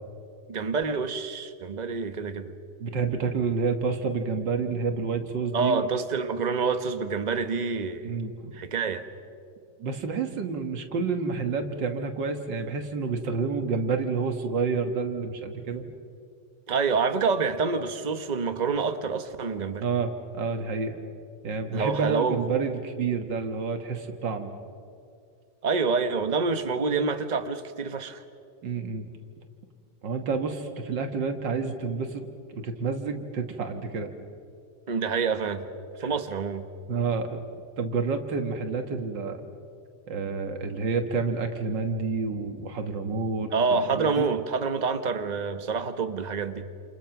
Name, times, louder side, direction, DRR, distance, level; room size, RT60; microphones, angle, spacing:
voice 1, 0.5-2.5 5.5-8.1 8.5-9.1 16.7-19.8 21.7-22.4 25.6-28.2 34.9-35.7 36.0-36.7 43.5-46.7, right 5 dB, 30° right, 8 dB, 1.1 m, -27 dB
voice 2, 2.8-5.9 8.0-8.5 9.8-15.9 19.8-21.0 21.4-24.5 28.6-29.1 30.0-34.1 36.0-36.2 36.9-37.4 37.8-39.4 40.1-44.3, right 4 dB, 80° right, 5 dB, 2.1 m, -29 dB
29.0 x 28.5 x 5.9 m, 2.4 s
omnidirectional pair, 1.9 m